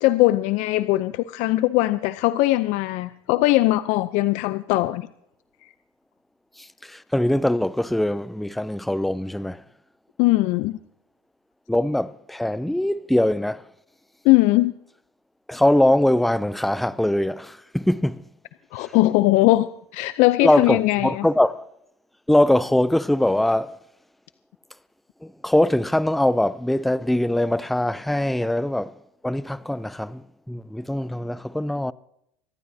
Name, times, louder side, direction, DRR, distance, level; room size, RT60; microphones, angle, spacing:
voice 1, 0.0-5.1 10.2-10.8 14.2-14.7 18.7-19.7 19.9-21.3, left 18 dB, 60° left, 0.6 m, -20 dB
voice 2, 6.6-9.6 11.7-13.7 15.5-18.2 18.8-18.9 20.4-21.6 22.3-23.8 25.2-29.0 29.2-31.9, left 1 dB, ahead, 0.4 m, -22 dB
25.0 x 12.5 x 2.8 m
supercardioid pair, 100°, 14 cm